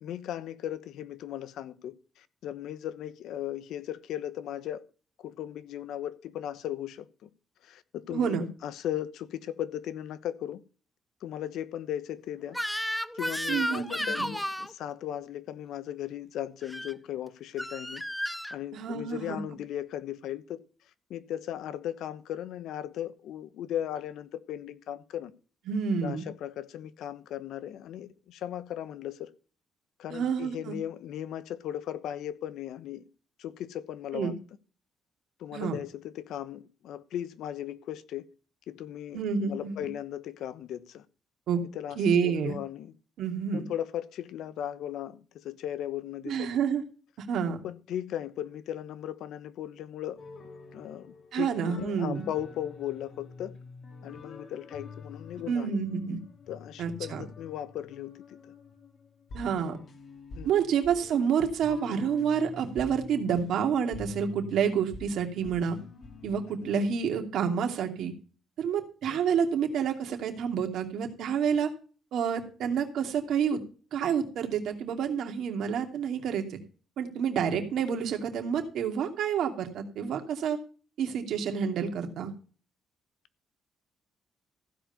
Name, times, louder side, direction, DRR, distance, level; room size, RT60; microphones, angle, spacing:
voice 1, 0.0-4.8 5.2-7.3 7.6-10.6 11.2-12.6 13.1-18.0 18.5-20.6 21.1-25.3 26.0-29.3 30.0-33.0 33.4-34.3 35.4-38.3 38.7-39.2 39.5-41.0 41.7-42.9 43.5-46.5 47.6-50.2 50.7-53.6 54.0-55.8 56.5-58.4 60.4-60.5 66.6-66.7 69.1-69.2, left 11 dB, 80° left, 1.1 m, -37 dB
voice 2, 8.1-8.5 13.5-14.3 18.7-19.4 25.7-26.3 30.1-30.8 34.1-34.3 35.5-35.8 39.1-39.9 41.5-41.6 42.0-42.6 43.2-43.6 46.3-46.8 47.2-47.6 51.3-52.3 55.5-56.2 56.8-57.2 59.3-59.8 60.4-65.8 66.2-68.1 68.6-71.7 72.1-73.6 73.9-76.6 77.0-80.6 81.0-82.3, right 7 dB, 75° right, 2.6 m, -29 dB
Crying sobbing / Screech, 12.5-14.7 16.6-16.9 17.6-18.6, equal, 5° left, 0.6 m, -33 dB
sound 1, 50.2-67.1, left 4 dB, 55° left, 3.1 m, -47 dB
15.5 x 5.2 x 6.8 m
cardioid pair, 90°, 0 cm